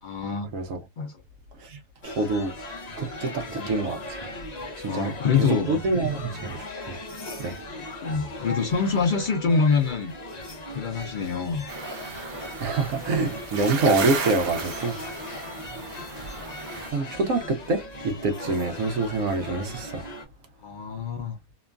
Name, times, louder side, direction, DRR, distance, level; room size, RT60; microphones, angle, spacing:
voice 1, 0.0-0.5 1.0-1.2 3.6-3.9 4.9-5.7 8.0-10.1 10.7-11.7 20.6-21.4, left 5 dB, 75° left, 0.4 m, -25 dB
sound 1, 2.0-20.3, left 2 dB, 40° left, 0.7 m, -39 dB
voice 2, 2.0-2.5 3.0-4.2 4.9-5.1 5.7-6.6 6.9-7.0 7.4-7.5 12.6-14.9 16.9-20.1, right 3 dB, 70° right, 1.0 m, -26 dB
sound 2, 11.7-16.9, right 4 dB, 50° right, 0.8 m, -35 dB
3.0 x 2.2 x 2.3 m
omnidirectional pair, 1.5 m